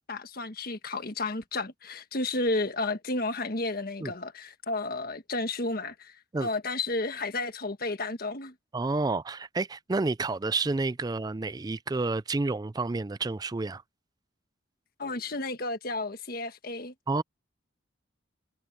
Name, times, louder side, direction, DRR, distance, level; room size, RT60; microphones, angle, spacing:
voice 1, 0.1-8.5 15.0-16.9, left 2 dB, 50° left, 1.5 m, -32 dB
voice 2, 8.7-13.8 17.1-17.2, right 3 dB, 20° right, 0.4 m, -29 dB
head